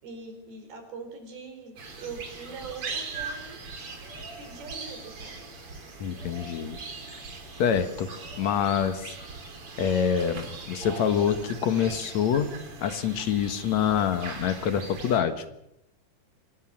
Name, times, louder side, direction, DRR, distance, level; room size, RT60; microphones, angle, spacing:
voice 1, 0.0-3.6 4.4-5.5, right 4 dB, 75° right, 5 dB, 6.5 m, -42 dB
sound 1, 1.8-15.2, right 4 dB, 35° right, 3.7 m, -40 dB
voice 2, 6.0-6.8 7.6-9.1 9.8-12.5 12.8-15.4, left 8 dB, 55° left, 9 dB, 2.2 m, -26 dB
25.5 x 18.0 x 7.5 m, 0.85 s
omnidirectional pair, 4.5 m